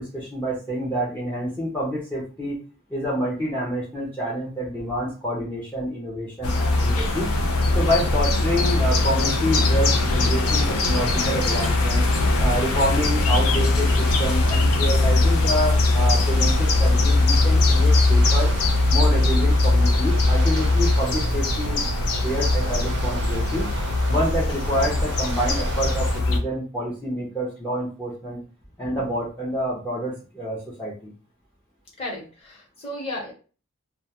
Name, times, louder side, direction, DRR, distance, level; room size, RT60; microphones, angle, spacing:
voice 1, 0.0-2.6 2.9-7.3 7.7-12.0 12.4-18.5 18.9-21.8 22.0-23.7 24.1-28.4 28.8-31.1, equal, 10° left, -5 dB, 0.5 m, -28 dB
sound 1, 6.4-26.4, left 2 dB, 70° left, 0.5 m, -20 dB
sound 2, 13.7-26.2, right 4 dB, 50° right, 0.5 m, -39 dB
voice 2, 32.0-33.3, left 1 dB, 30° left, -4 dB, 1.0 m, -34 dB
2.2 x 2.2 x 2.8 m, 0.36 s
head